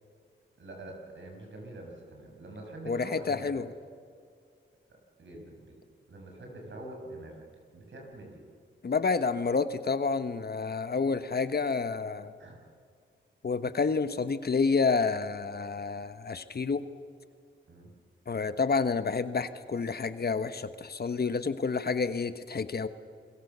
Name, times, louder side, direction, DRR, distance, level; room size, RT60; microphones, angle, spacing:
voice 1, 0.6-3.6 5.2-5.7 6.1-7.4 7.7-8.4 12.4-12.6 17.7-17.9, right 1 dB, 70° right, 1 dB, 6.7 m, -44 dB
voice 2, 2.8-3.6 8.8-12.3 13.4-16.8 18.3-22.9, left 4 dB, 50° left, 11 dB, 1.3 m, -29 dB
28.5 x 22.5 x 6.9 m, 2.2 s
wide cardioid pair, 85°, 20 cm